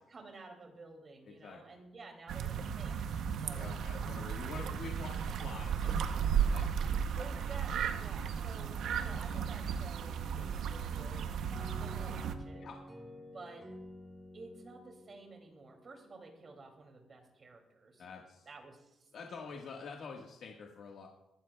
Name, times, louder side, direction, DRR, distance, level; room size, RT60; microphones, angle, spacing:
voice 1, 0.1-3.0 3.4-3.7 5.0-5.3 7.2-11.3 11.5-12.6 13.2-13.6 14.3-18.0 18.5-19.0 19.5-19.6, right 3 dB, 35° right, 2 dB, 2.6 m, -52 dB
voice 2, 1.4-1.8 3.5-6.7 12.5-12.8 18.0-18.5 19.1-21.1, left 5 dB, 60° left, 0 dB, 1.5 m, -47 dB
sound 1, 2.3-12.4, right 7 dB, 75° right, 0.8 m, -35 dB
sound 2, 11.5-16.1, left 1 dB, 15° right, 2.0 m, -51 dB
23.0 x 12.5 x 2.3 m, 0.89 s
cardioid pair, 140°, 0 cm